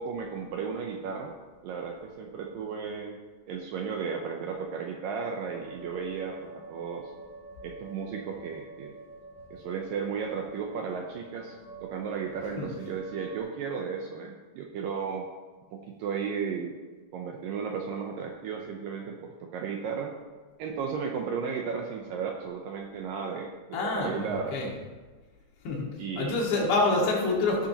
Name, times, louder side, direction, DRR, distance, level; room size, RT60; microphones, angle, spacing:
voice 1, 0.0-1.3 1.6-3.2 3.5-7.1 7.6-9.0 9.5-15.3 15.7-16.7 17.1-20.2 20.6-24.6 26.0-26.5, right 6 dB, 80° right, 2 dB, 2.1 m, -34 dB
sound 1, 5.5-13.4, right 3 dB, 35° left, 3.7 m, -48 dB
voice 2, 23.7-24.7 25.6-25.9 26.2-27.7, left 3 dB, 90° left, -3 dB, 4.3 m, -27 dB
17.0 x 8.5 x 3.0 m, 1.3 s
omnidirectional pair, 4.9 m